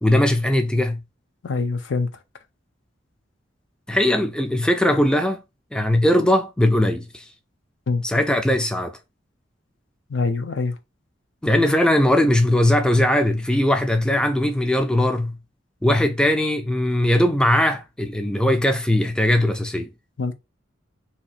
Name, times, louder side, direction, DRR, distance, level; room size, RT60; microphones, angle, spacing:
voice 1, 0.0-1.0 3.9-5.4 5.7-7.2 8.0-9.0 11.4-15.4 15.8-19.9, left 1 dB, 5° left, 0.3 m, -19 dB
voice 2, 1.4-2.1 7.9-8.0 10.1-10.7 20.2-20.3, left 4 dB, 70° left, 0.5 m, -24 dB
2.8 x 2.4 x 4.2 m
head